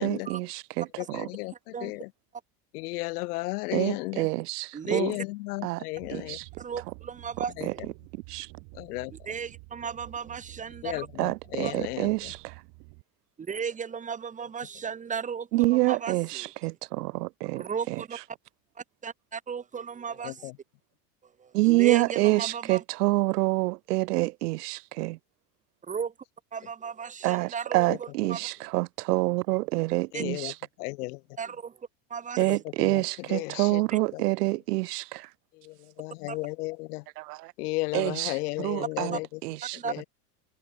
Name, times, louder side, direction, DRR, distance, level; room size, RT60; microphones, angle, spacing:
voice 1, 0.0-1.3 3.7-5.1 5.6-5.8 6.1-6.5 6.9-7.0 7.4-7.7 8.1-8.5 11.2-12.6 15.5-18.0 21.5-25.2 27.2-30.6 32.4-35.3 37.2-37.5 37.9-39.8, right 20 dB, 85° right, 0.8 m, -27 dB
voice 2, 1.0-2.1 2.7-4.3 4.9-6.4 7.6-7.9 8.7-9.1 10.8-12.3 20.2-20.6 27.9-28.0 30.1-30.5 30.8-31.2 32.4-33.0 33.3-33.8 34.1-34.2 35.5-37.0 37.6-39.4 39.8-40.1, left 22 dB, 80° left, 0.7 m, -34 dB
sound 1, 6.0-13.0, right 40 dB or more, 60° right, 3.5 m, -50 dB
voice 3, 6.6-7.5 9.3-11.1 11.6-11.7 13.4-16.5 17.5-18.2 19.0-20.5 21.4-22.8 25.9-26.1 26.5-27.9 28.3-28.4 29.9-30.2 31.4-31.8 32.1-32.4 33.3-33.4 36.3-36.4 39.1-39.2 39.8-39.9, right 6 dB, 15° right, 1.2 m, -35 dB
open air
supercardioid pair, 130°, 45 cm